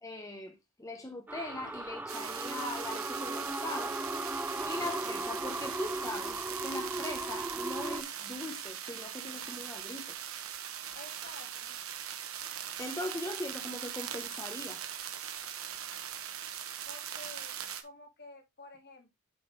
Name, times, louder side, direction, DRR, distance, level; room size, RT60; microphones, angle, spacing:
voice 1, 0.0-4.0 4.7-10.0 12.8-14.8, left 1 dB, 15° left, 1.1 m, -40 dB
sound 1, 1.3-8.0, right 2 dB, 10° right, 0.4 m, -37 dB
sound 2, 2.1-17.8, right 9 dB, 85° right, 1.2 m, -41 dB
voice 2, 10.9-11.8 16.9-17.5 17.8-19.1, left 2 dB, 55° left, 2.1 m, -51 dB
8.0 x 5.0 x 3.4 m
head